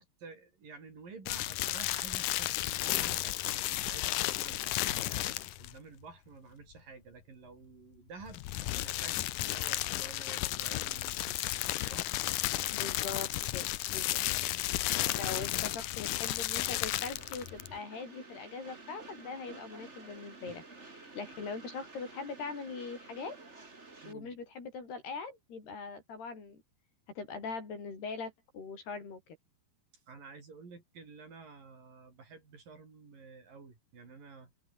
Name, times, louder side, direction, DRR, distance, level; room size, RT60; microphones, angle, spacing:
voice 1, 0.0-11.5 11.8-12.1 15.0-15.5 20.5-20.6 24.0-24.4 30.1-34.5, right 4 dB, 55° right, 7.2 m, -51 dB
sound 1, 1.3-5.8 8.2-17.8, left 16 dB, 85° left, 1.8 m, -33 dB
voice 2, 12.7-14.2 15.1-20.6 21.0-23.4 24.1-26.6 27.1-29.4, left 4 dB, 70° left, 8.9 m, -41 dB
Train, 16.5-24.1, right 3 dB, 20° right, 2.5 m, -52 dB
omnidirectional pair, 4.8 m